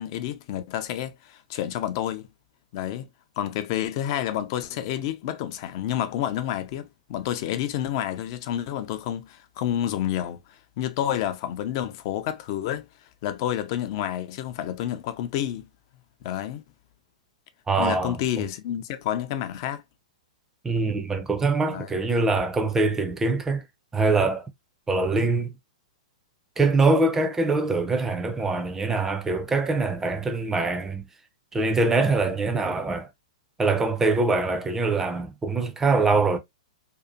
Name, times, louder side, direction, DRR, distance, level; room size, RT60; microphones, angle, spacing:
voice 1, 0.0-2.3 2.7-3.1 3.4-12.9 13.2-15.7 16.2-16.6 17.8-19.8 21.7-21.9, left 11 dB, 45° left, 0.4 m, -29 dB
voice 2, 17.7-18.2 20.6-23.6 23.9-24.5 24.9-25.5 26.6-31.0 31.5-33.1 33.6-36.4, right 3 dB, 10° right, 0.5 m, -23 dB
2.7 x 2.4 x 2.3 m
figure-of-eight pair, 110°, 4 cm